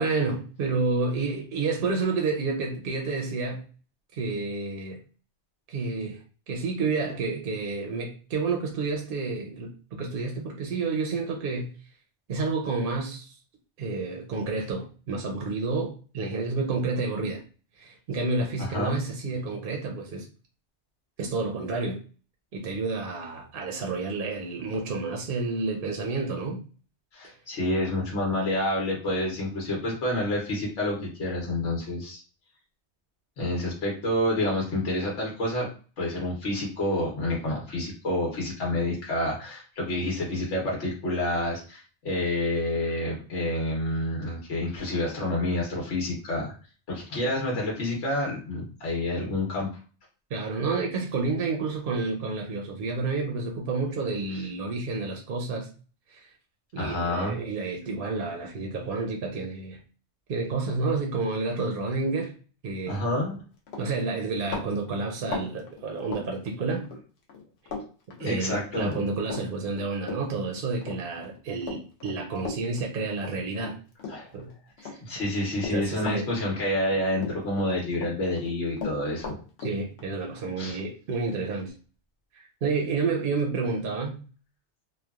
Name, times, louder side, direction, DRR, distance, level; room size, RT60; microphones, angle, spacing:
voice 1, 0.0-3.6 4.1-5.0 5.7-11.7 12.3-13.4 13.8-17.4 17.8-20.3 21.2-22.0 22.5-26.6 50.3-55.7 56.1-56.3 56.7-59.8 60.3-62.3 62.6-63.0 63.8-66.9 68.2-73.8 74.3-74.5 74.8-75.0 75.7-76.3 79.6-81.7 82.3-84.2, right 3 dB, 60° right, 0.7 m, -30 dB
voice 2, 18.6-19.0 27.1-32.2 33.4-35.7 36.0-46.5 46.9-49.7 56.8-57.4 62.9-63.4 68.2-68.9 74.1-74.3 75.0-79.3 80.6-80.8, left 1 dB, 85° left, 1.2 m, -28 dB
Run, 63.2-63.4 63.7-67.0 67.3-67.9 68.1-74.5 74.8-76.9 77.2-78.1 78.4-81.7, left 4 dB, 70° left, 0.9 m, -38 dB
3.0 x 2.2 x 2.3 m
omnidirectional pair, 1.2 m